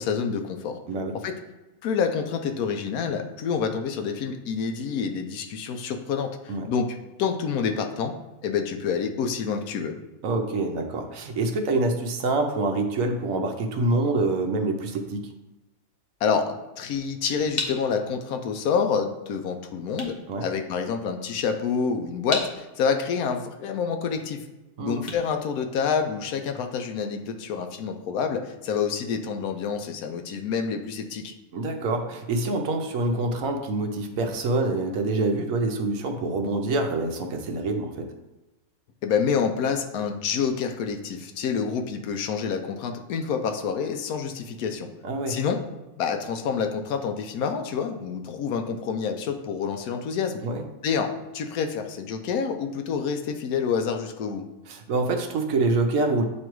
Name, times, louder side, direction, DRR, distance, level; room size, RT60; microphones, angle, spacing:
voice 1, 0.0-0.8 1.2-1.4 1.8-8.1 8.4-10.0 16.2-24.4 24.8-31.3 39.0-44.9 45.3-45.6 46.0-50.4 50.8-54.5, left 6 dB, 85° left, 5 dB, 1.1 m, -28 dB
voice 2, 10.2-15.3 20.3-20.5 24.8-25.0 31.5-38.1 45.0-45.4 50.4-50.6 54.7-56.2, right 2 dB, 70° right, 4 dB, 1.1 m, -26 dB
sound 1, 17.5-26.3, left 2 dB, 35° left, 1.0 m, -38 dB
8.4 x 3.2 x 4.6 m, 1.1 s
omnidirectional pair, 1.5 m